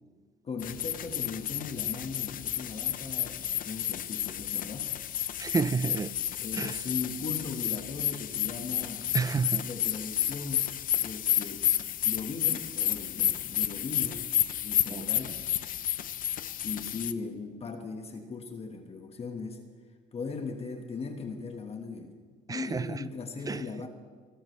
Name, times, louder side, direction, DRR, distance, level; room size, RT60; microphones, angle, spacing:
voice 1, 0.4-4.9 6.4-9.1 9.5-10.7 11.0-11.6 12.0-14.2 14.6-15.4 16.6-19.6 20.1-22.1 22.5-23.9, left 4 dB, 35° left, 1.5 m, -38 dB
sound 1, 0.6-17.1, left 11 dB, 55° left, 0.7 m, -31 dB
voice 2, 5.4-6.1 6.5-6.8 9.1-9.7 14.9-15.1 22.5-23.0 23.5-23.6, right 5 dB, 20° right, 0.4 m, -30 dB
24.5 x 13.5 x 3.3 m
cardioid pair, 110°, 17 cm